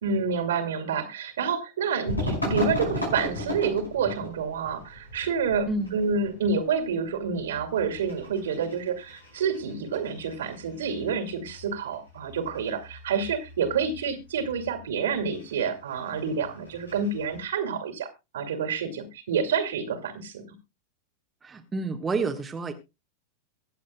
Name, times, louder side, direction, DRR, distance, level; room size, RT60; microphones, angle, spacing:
voice 1, 0.0-18.1 18.3-20.5, right 5 dB, 60° right, 6 dB, 2.3 m, -28 dB
sound 1, 2.1-17.4, left 1 dB, 85° left, 5.5 m, -37 dB
voice 2, 21.4-22.7, right 3 dB, 15° right, 3 dB, 1.4 m, -29 dB
23.5 x 8.4 x 2.2 m, 0.25 s
figure-of-eight pair, 90°, 0 cm